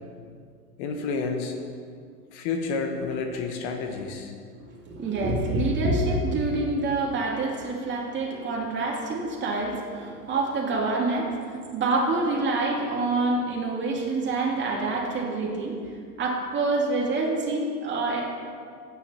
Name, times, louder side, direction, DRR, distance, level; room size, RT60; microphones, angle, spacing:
voice 1, 0.8-1.6 2.3-4.3, left 4 dB, 45° left, 4 dB, 1.2 m, -30 dB
voice 2, 4.5-18.2, right 2 dB, 20° right, -3 dB, 2.7 m, -27 dB
16.0 x 9.5 x 2.9 m, 2.2 s
figure-of-eight pair, 100°, 49 cm